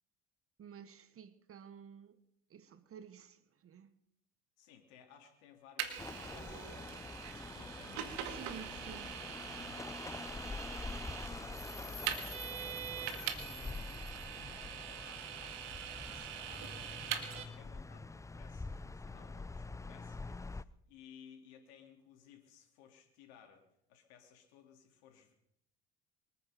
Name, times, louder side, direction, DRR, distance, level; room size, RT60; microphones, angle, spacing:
voice 1, 0.6-2.2 2.5-3.9 8.3-9.2, right 8 dB, 45° right, 1.4 m, -52 dB
voice 2, 4.6-8.5 9.6-13.9 14.3-23.6 23.9-25.3, left 7 dB, 80° left, 3.3 m, -60 dB
Vehicle, 5.8-17.4, right 10 dB, 75° right, 2.2 m, -43 dB
sound 1, 6.0-20.6, left 3 dB, 10° left, 0.5 m, -45 dB
24.0 x 9.8 x 5.2 m
hypercardioid pair, 70°, 33 cm